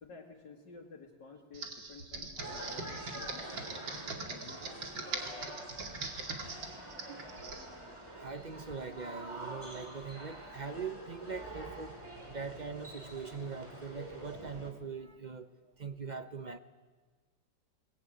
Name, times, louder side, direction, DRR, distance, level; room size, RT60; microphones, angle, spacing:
voice 1, 0.0-3.8 4.2-5.2, left 4 dB, 70° left, -3 dB, 2.7 m, -53 dB
Computer keyboard, 1.5-7.6, right 4 dB, 85° right, 3.0 m, -41 dB
sound 1, 2.4-14.7, right 1 dB, 15° right, 3.1 m, -46 dB
voice 2, 8.2-12.0 12.3-16.6, right 5 dB, 50° right, 10 dB, 0.5 m, -42 dB
21.5 x 20.5 x 9.3 m, 1.4 s
omnidirectional pair, 2.0 m